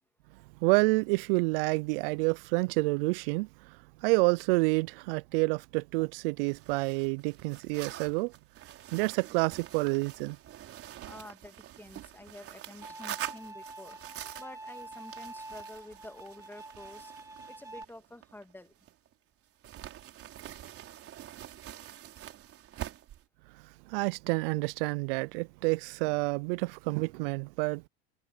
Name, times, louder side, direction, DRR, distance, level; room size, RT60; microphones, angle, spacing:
voice 1, 0.6-8.3 8.9-10.4 23.9-27.9, right 27 dB, 70° right, 0.5 m, -28 dB
sound 1, 6.5-19.1 19.6-23.2, right 12 dB, 50° right, 4.1 m, -45 dB
voice 2, 11.0-14.0 14.4-17.1 17.5-18.7, left 1 dB, 5° left, 2.6 m, -49 dB
Bowed string instrument, 12.8-17.8, right 2 dB, 10° right, 2.9 m, -46 dB
hypercardioid pair, 85°, 29 cm